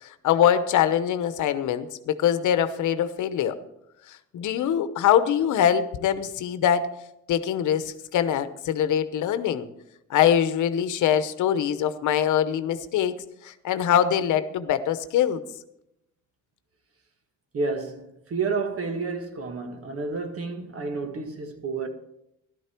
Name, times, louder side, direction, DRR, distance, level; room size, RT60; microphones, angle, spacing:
voice 1, 0.0-3.6 4.1-6.9 7.3-9.7 10.1-15.4, left 9 dB, 75° left, 0.9 m, -23 dB
voice 2, 17.5-21.9, right 4 dB, 50° right, 1.7 m, -30 dB
13.5 x 12.0 x 4.5 m
cardioid pair, 90°, 30 cm